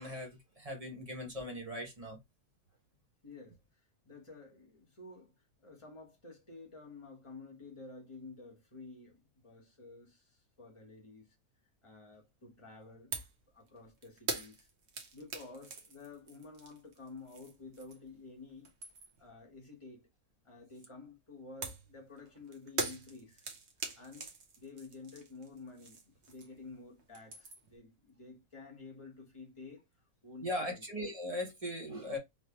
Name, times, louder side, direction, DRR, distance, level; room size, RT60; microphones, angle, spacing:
voice 1, 0.0-2.2 30.4-32.2, left 1 dB, 30° right, 0.8 m, -39 dB
voice 2, 3.2-3.6 4.0-11.2 11.8-13.1 13.5-14.7 15.1-18.7 19.2-20.1 20.4-23.5 24.0-24.3 24.6-29.8 30.2-30.8, left 3 dB, 25° left, 1.0 m, -51 dB
sound 1, 13.1-13.4 13.7-18.2 18.5-19.3 21.6-26.7 27.0-27.8, right 4 dB, 55° right, 1.0 m, -42 dB
3.4 x 2.9 x 2.8 m
omnidirectional pair, 1.5 m